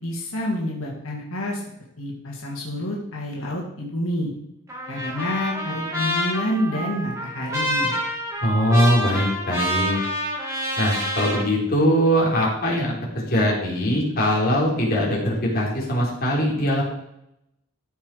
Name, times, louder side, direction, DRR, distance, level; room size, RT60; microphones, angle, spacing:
voice 1, 0.0-1.6 2.0-4.3 4.9-8.0, left 1 dB, 85° left, -3 dB, 2.6 m, -28 dB
Trumpet, 4.7-11.4, equal, 15° right, 3.1 m, -27 dB
voice 2, 8.4-10.0 10.8-16.8, equal, 45° left, -3 dB, 3.7 m, -21 dB
14.0 x 6.0 x 4.9 m, 0.81 s
head